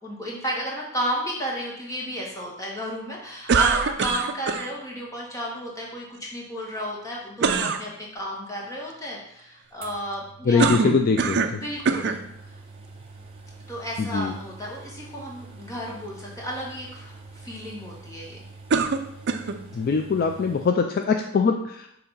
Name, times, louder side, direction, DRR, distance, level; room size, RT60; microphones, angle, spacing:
voice 1, 0.0-10.7 11.5-12.1 13.7-18.4, equal, 15° left, -3 dB, 1.4 m, -33 dB
sound 1, 3.5-4.7 7.4-7.8 10.6-11.6 11.9-12.2 13.0-13.1 18.7-19.6, right 5 dB, 50° right, 0.4 m, -23 dB
sound 2, 9.8-20.7, right 3 dB, 25° right, 0.8 m, -46 dB
voice 2, 10.5-11.6 14.0-14.3 19.7-21.9, left 5 dB, 40° left, 5 dB, 0.3 m, -22 dB
6.7 x 2.8 x 5.5 m, 0.76 s
head